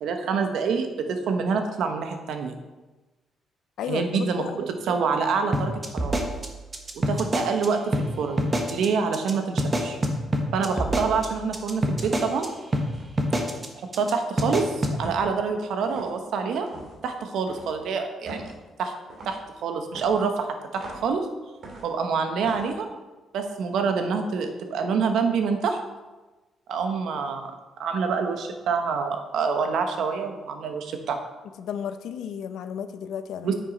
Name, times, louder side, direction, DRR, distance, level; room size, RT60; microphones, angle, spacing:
voice 1, 0.0-2.6 3.9-6.2 6.9-8.4 8.7-10.0 10.5-12.5 13.8-16.7 17.0-18.5 18.8-18.9 19.2-21.3 21.8-22.9 23.3-25.8 26.7-27.5 27.8-31.2 33.4-33.5, right 5 dB, 75° right, 6 dB, 1.1 m, -26 dB
voice 2, 3.8-4.6 7.1-7.2 31.6-33.5, left 8 dB, 80° left, 10 dB, 0.6 m, -33 dB
sound 1, 5.5-7.7 7.9-8.1 8.4-8.9 9.1-9.3 9.6-12.5 12.7-12.9 13.2-13.7 13.9-14.1 14.4-15.0, right 1 dB, 30° right, 1.3 m, -25 dB
sound 2, 11.2-11.5 12.0-12.3 12.9-13.1 15.0-15.4 15.8-16.2 16.7-17.0 17.5-17.8 18.3-18.6 19.1-19.4 19.9-21.1 21.6-22.0 22.4-22.7, right 2 dB, 60° right, 2.3 m, -42 dB
9.5 x 6.2 x 4.1 m, 1.2 s
cardioid pair, 90°, 0 cm